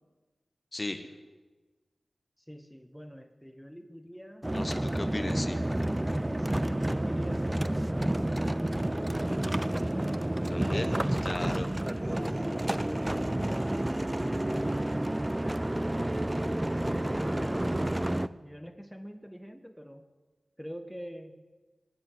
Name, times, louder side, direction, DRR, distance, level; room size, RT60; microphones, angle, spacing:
voice 1, 0.7-1.1 4.5-5.6 10.5-10.9 11.2-11.7, left 2 dB, 35° left, 9 dB, 1.3 m, -36 dB
voice 2, 2.5-4.5 5.1-5.4 6.4-9.0 9.9-10.2 10.5-11.1 12.1-13.8 18.4-20.0 20.6-21.4, equal, ahead, 7 dB, 1.0 m, -45 dB
sound 1, 4.4-18.3, right 1 dB, 15° right, 0.5 m, -30 dB
20.0 x 7.1 x 9.6 m, 1.3 s
wide cardioid pair, 80°, 0 cm